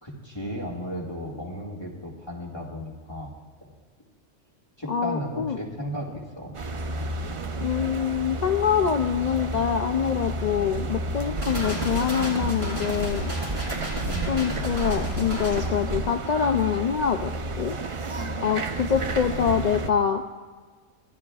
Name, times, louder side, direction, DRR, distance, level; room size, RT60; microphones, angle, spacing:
voice 1, 0.0-3.3 3.6-3.7 4.8-6.5 14.0-14.5 19.3-19.6, equal, 20° left, -2 dB, 2.0 m, -35 dB
voice 2, 4.9-5.6 7.6-13.3 14.3-17.8 18.4-20.2, left 8 dB, 65° left, 6 dB, 0.4 m, -25 dB
sound 1, 6.5-19.9, right 2 dB, 40° right, 0.5 m, -32 dB
sound 2, 11.4-15.7, equal, 55° right, 3.7 m, -31 dB
24.5 x 15.0 x 2.4 m, 1.5 s
omnidirectional pair, 1.3 m